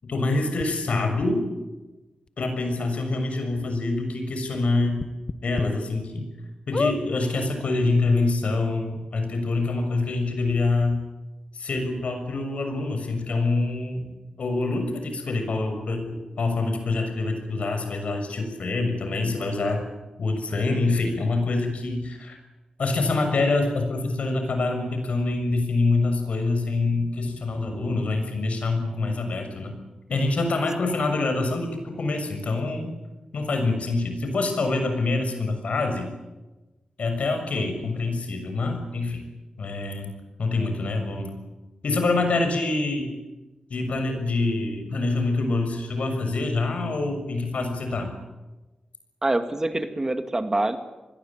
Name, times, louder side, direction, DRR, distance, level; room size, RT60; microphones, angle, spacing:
voice 1, 0.0-1.4 2.4-5.0 5.4-6.3 6.7-11.0 11.5-14.1 14.4-19.8 20.2-22.4 22.8-29.8 30.1-32.9 33.3-36.1 37.0-39.2 39.6-40.1 40.4-41.3 41.8-43.1 43.7-48.1, left 3 dB, 75° left, 6 dB, 6.6 m, -25 dB
sound 1, 0.6-0.7 1.2-1.3 2.3-2.4 2.7-2.8 3.2-3.3 5.0-5.7 6.1-6.2 6.7-7.0 7.8-7.9 8.1-8.2, left 4 dB, 45° left, 1.2 m, -28 dB
voice 2, 49.2-50.8, right 2 dB, 25° right, 8 dB, 2.1 m, -25 dB
27.0 x 21.0 x 8.8 m, 1.1 s
wide cardioid pair, 100°, 2 cm